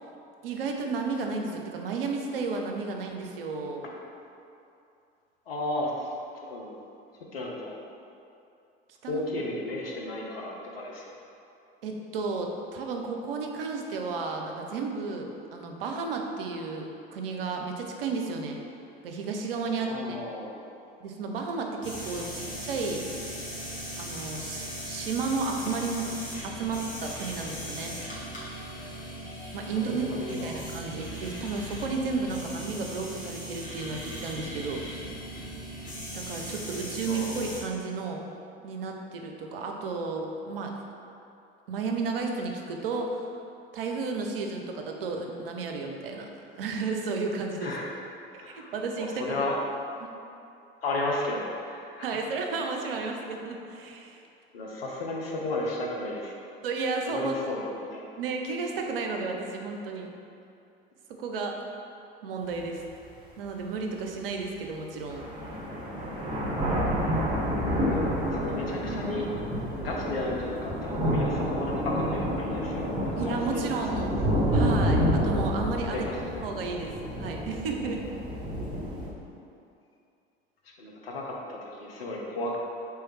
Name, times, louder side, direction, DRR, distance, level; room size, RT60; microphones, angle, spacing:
voice 1, 0.4-3.8 9.0-9.2 11.8-18.6 19.0-20.2 21.0-23.0 24.0-26.1 26.4-28.0 29.5-30.0 30.3-34.8 36.1-38.2 38.6-40.8 41.7-43.3 43.7-46.3 46.6-47.7 48.5-49.5 52.0-54.2 56.6-57.3 58.2-60.1 61.1-61.6 62.2-62.8 63.4-65.2 73.2-74.1 74.5-76.1 76.4-78.1, right 4 dB, 70° right, 2 dB, 0.5 m, -33 dB
voice 2, 5.5-6.1 6.3-6.8 7.3-7.7 9.1-11.1 19.8-20.6 29.9-30.6 37.0-37.6 47.6-47.9 48.4-49.6 50.8-52.2 54.5-56.3 57.1-58.0 67.8-69.3 69.8-73.7 74.0-74.6 75.9-76.2 80.6-82.6, left 2 dB, 75° left, -2 dB, 0.7 m, -34 dB
sound 1, 21.8-37.6, equal, 25° left, 1.2 m, -38 dB
sound 2, 62.6-62.7 63.3-63.4 64.7-64.8 65.1-79.1, equal, 15° right, 1.1 m, -29 dB
3.3 x 3.1 x 4.6 m, 2.6 s
figure-of-eight pair, 65°, 30 cm